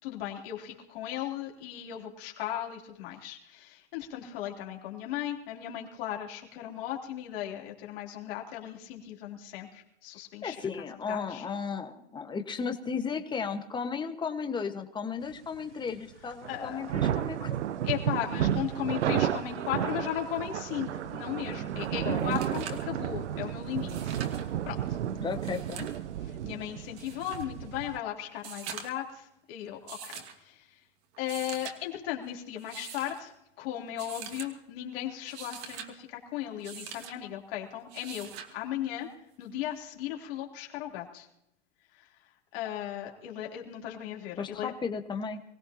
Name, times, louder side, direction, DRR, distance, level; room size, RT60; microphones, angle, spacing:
voice 1, 0.0-10.6 11.1-11.4 16.5-16.8 17.8-25.0 26.2-30.8 31.2-39.1 39.4-41.3 41.9-42.1 42.5-44.7, left 11 dB, 55° left, 0 dB, 3.4 m, -37 dB
voice 2, 10.4-17.6 22.0-22.3 25.2-25.8 44.4-45.4, left 5 dB, 15° left, 6 dB, 1.4 m, -35 dB
sound 1, 16.4-28.0, right 10 dB, 85° right, 0.8 m, -32 dB
sound 2, 21.8-21.9 22.2-22.9 23.8-24.5 25.3-26.0 27.0-27.5 28.3-29.1 29.9-30.4 31.1-31.8 32.6-33.2 34.0-34.5 35.1-35.9 36.6-37.1 37.9-38.5 39.9-40.0, right 8 dB, 40° right, 2.6 m, -43 dB
25.0 x 17.0 x 2.9 m, 0.80 s
hypercardioid pair, 125°, 34 cm